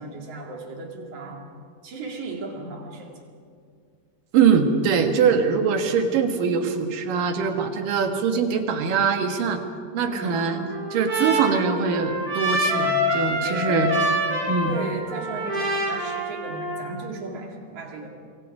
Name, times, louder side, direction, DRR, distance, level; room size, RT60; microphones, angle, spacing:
voice 1, 0.0-1.5 1.8-3.1 10.0-10.5 13.4-14.0 14.6-18.1, right 3 dB, 65° right, 1 dB, 3.6 m, -35 dB
voice 2, 4.3-9.6 9.9-10.6 10.9-13.9 14.5-14.8, right 6 dB, 90° right, 5 dB, 3.3 m, -22 dB
Trumpet, 10.2-17.0, equal, 25° right, 4.5 m, -26 dB
26.0 x 24.5 x 5.0 m, 2.2 s
omnidirectional pair, 3.7 m